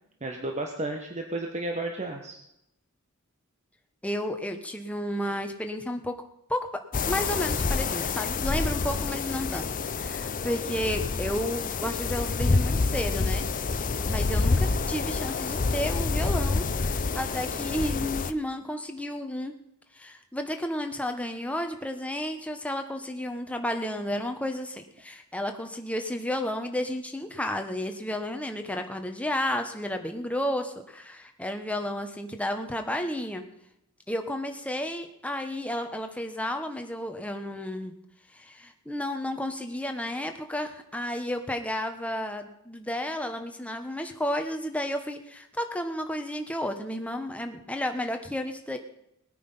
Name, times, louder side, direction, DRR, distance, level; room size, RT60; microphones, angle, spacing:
voice 1, 0.2-2.4, right 2 dB, 30° right, 3 dB, 1.4 m, -32 dB
voice 2, 4.0-6.1 6.5-6.7 7.0-13.4 14.0-19.5 19.9-33.4 34.1-37.9 38.3-48.8, left 1 dB, 5° left, 5 dB, 1.3 m, -32 dB
sound 1, 6.9-18.3, left 4 dB, 40° left, 0.6 m, -28 dB
19.5 x 9.5 x 5.7 m, 0.81 s
head